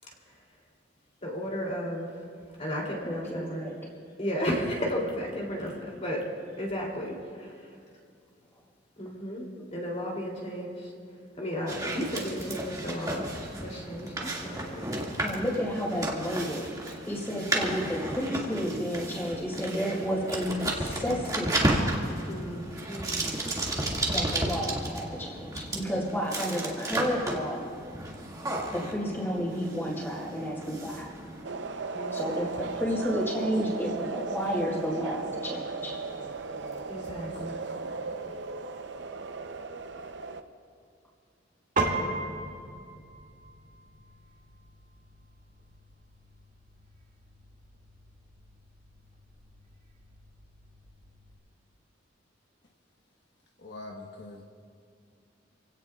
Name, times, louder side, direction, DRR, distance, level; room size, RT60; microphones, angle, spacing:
voice 1, 1.2-2.1 2.6-3.7 4.2-6.2 6.6-7.7 9.0-9.4 9.7-10.9 11.4-13.3 13.6-14.8 22.3-23.4 31.9-32.8 36.9-37.6, equal, 35° left, -2 dB, 3.0 m, -34 dB
voice 2, 3.0-3.8 15.2-16.7 17.0-21.9 24.1-27.7 28.7-31.1 32.1-35.9, equal, 15° left, -5 dB, 4.7 m, -31 dB
sound 1, 11.7-31.5, right 1 dB, 20° right, 2.1 m, -33 dB
sound 2, 31.4-40.4, right 4 dB, 70° right, 0.7 m, -36 dB
Piano, 41.8-51.4, right 2 dB, 45° right, 2.1 m, -38 dB
voice 3, 53.6-54.4, left 2 dB, 65° left, 0 dB, 1.2 m, -43 dB
28.5 x 17.0 x 2.4 m, 2.3 s
head